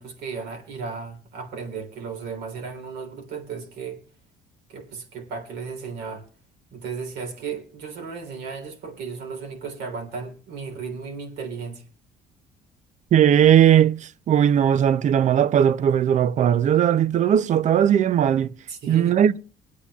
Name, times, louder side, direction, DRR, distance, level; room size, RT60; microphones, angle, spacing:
voice 1, 0.0-4.0 4.7-6.2 6.7-11.8 18.7-19.2, right 5 dB, 80° right, 3.3 m, -35 dB
voice 2, 13.1-18.5 18.9-19.4, right 9 dB, 45° right, 0.5 m, -18 dB
25.0 x 8.5 x 2.3 m
cardioid pair, 110°, 17 cm